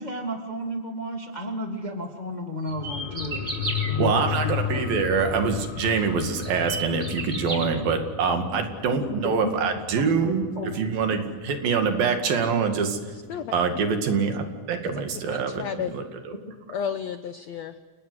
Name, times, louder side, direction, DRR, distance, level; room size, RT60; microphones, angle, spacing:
voice 1, 0.0-3.5 3.9-4.8 8.9-9.0 9.2-9.5 10.5-10.7 11.0-11.2, equal, 20° left, 3 dB, 1.2 m, -32 dB
sound 1, 2.7-11.8 12.1-12.2, left 9 dB, 65° left, 2.3 m, -33 dB
sound 2, 2.7-3.9 5.6-5.7 6.2-7.7, right 2 dB, 15° right, 3.5 m, -32 dB
voice 2, 4.0-10.5 10.7-13.0 13.5-16.3, right 5 dB, 75° right, 5 dB, 3.9 m, -25 dB
voice 3, 14.8-15.9 16.7-17.8, left 8 dB, 85° left, 10 dB, 1.5 m, -32 dB
29.0 x 18.5 x 8.0 m, 1.5 s
omnidirectional pair, 4.2 m